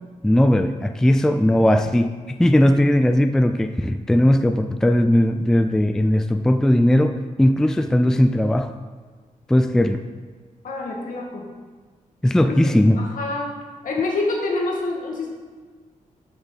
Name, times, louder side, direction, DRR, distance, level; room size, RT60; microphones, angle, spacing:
voice 1, 0.2-2.1 2.4-8.7 9.5-10.0 12.2-13.0, left 1 dB, 5° left, 8 dB, 0.3 m, -18 dB
voice 2, 10.6-11.5 12.4-13.6 13.8-15.3, left 3 dB, 70° left, -1 dB, 2.1 m, -27 dB
12.5 x 7.1 x 4.1 m, 1.5 s
wide cardioid pair, 175°, 14 cm